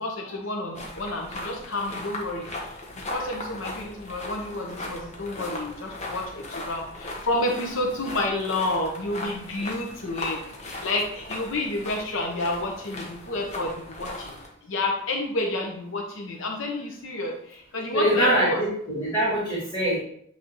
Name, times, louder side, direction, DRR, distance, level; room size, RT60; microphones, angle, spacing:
voice 1, 0.0-2.5 3.0-14.4 14.7-18.6, left 2 dB, 75° left, 0 dB, 1.0 m, -30 dB
sound 1, 0.7-14.5, left 2 dB, 35° left, 1.1 m, -38 dB
voice 2, 17.9-20.0, right 1 dB, 20° left, -13 dB, 2.4 m, -23 dB
8.6 x 3.5 x 3.1 m, 0.66 s
head